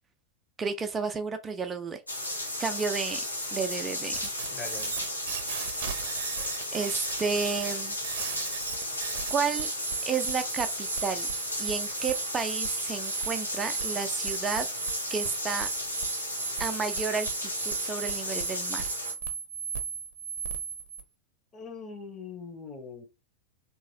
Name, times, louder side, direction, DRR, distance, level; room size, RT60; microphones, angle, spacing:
voice 1, 0.6-2.0 2.6-3.2 3.5-4.3 6.7-8.0 9.3-9.7 10.0-11.3 11.6-14.7 15.1-15.7 16.6-18.8, right 5 dB, 20° right, 0.4 m, -32 dB
sound 1, 2.1-19.1, left 1 dB, 85° left, 0.9 m, -34 dB
sound 2, 4.1-21.0, right 7 dB, 55° right, 0.7 m, -36 dB
voice 2, 4.5-5.0 21.5-23.0, left 4 dB, 25° left, 1.1 m, -41 dB
3.0 x 2.8 x 2.8 m
figure-of-eight pair, 90°, 0 cm